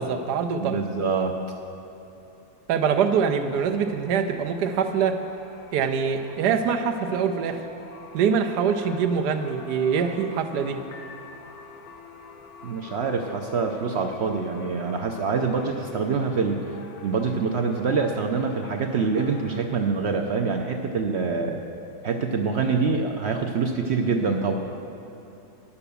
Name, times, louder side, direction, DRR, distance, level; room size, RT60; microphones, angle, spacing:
voice 1, 0.0-0.8 2.7-5.2 5.7-7.6 8.1-10.8, right 6 dB, 80° right, 7 dB, 1.3 m, -24 dB
voice 2, 0.6-1.4 12.6-16.6 17.0-21.6 22.0-24.6, right 4 dB, 60° right, 4 dB, 0.7 m, -25 dB
sound 1, 3.4-19.6, left 4 dB, 65° left, 1.3 m, -46 dB
11.0 x 7.0 x 6.8 m, 2.9 s
omnidirectional pair, 1.7 m